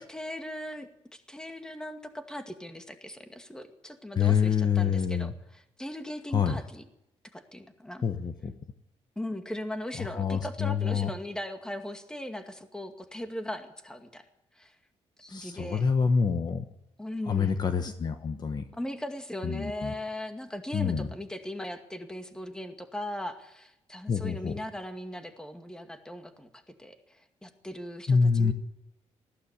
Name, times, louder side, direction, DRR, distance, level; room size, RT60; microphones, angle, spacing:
voice 1, 0.0-6.9 7.3-8.0 9.2-14.2 14.6-14.7 15.2-15.9 17.0-17.5 18.7-28.5, left 1 dB, 5° left, 7 dB, 2.2 m, -39 dB
voice 2, 4.2-5.3 6.3-6.6 8.0-8.5 10.0-11.1 15.3-16.6 17.3-18.6 19.4-19.9 20.7-21.1 24.1-24.5 28.1-28.5, left 6 dB, 35° left, 8 dB, 1.3 m, -26 dB
20.0 x 15.5 x 8.5 m, 0.82 s
cardioid pair, 130°, 12 cm